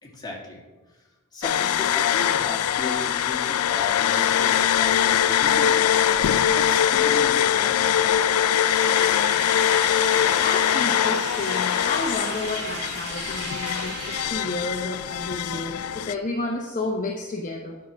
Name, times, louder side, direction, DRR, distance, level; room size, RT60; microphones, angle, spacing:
voice 1, 0.0-1.0 1.3-5.8 6.5-8.0, left 2 dB, 20° left, -2 dB, 2.0 m, -36 dB
sound 1, 1.4-16.1, left 10 dB, 85° left, 0.4 m, -22 dB
sound 2, 8.6-14.3, right 2 dB, 50° right, 2.3 m, -36 dB
voice 2, 10.4-17.8, left 2 dB, 35° left, 1 dB, 0.9 m, -31 dB
10.0 x 5.8 x 6.2 m, 1.2 s
head